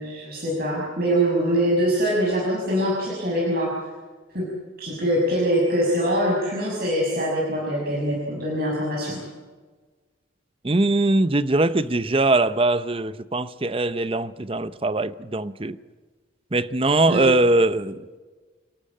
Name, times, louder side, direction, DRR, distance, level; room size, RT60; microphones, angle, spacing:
voice 1, 0.0-3.7 4.3-4.5 4.8-9.2 17.1-17.3, equal, 50° right, -4 dB, 6.3 m, -23 dB
voice 2, 10.6-15.8 16.5-18.2, right 2 dB, 25° right, 14 dB, 0.7 m, -21 dB
29.0 x 13.5 x 8.7 m, 1.4 s
head